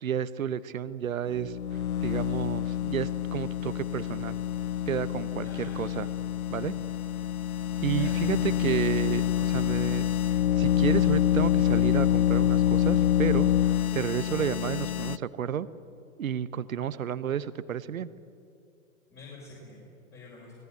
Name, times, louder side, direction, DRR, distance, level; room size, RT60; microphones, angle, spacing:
voice 1, 0.0-1.6 2.0-4.4 4.9-6.1 6.5-6.7 7.8-15.7 16.2-18.1, right 9 dB, 75° right, 16 dB, 1.1 m, -31 dB
sound 1, 1.3-15.2, left 11 dB, 85° left, 0.6 m, -26 dB
voice 2, 5.4-5.9 7.9-8.5 19.1-19.8 20.1-20.5, left 3 dB, 25° left, -4 dB, 6.3 m, -46 dB
24.5 x 18.0 x 8.2 m, 2.4 s
figure-of-eight pair, 105°, 42 cm